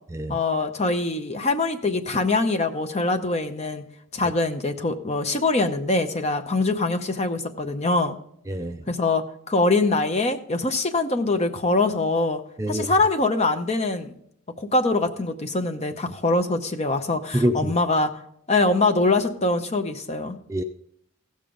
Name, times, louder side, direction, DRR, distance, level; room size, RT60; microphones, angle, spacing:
voice 1, 0.3-3.8 4.1-8.2 8.9-12.4 12.7-14.1 14.6-18.1 18.5-20.4, left 2 dB, 30° left, 7 dB, 0.7 m, -23 dB
voice 2, 8.5-8.8 12.6-12.9 17.3-17.7 20.5-20.6, equal, 15° right, 7 dB, 0.3 m, -25 dB
16.0 x 7.0 x 3.7 m, 0.70 s
head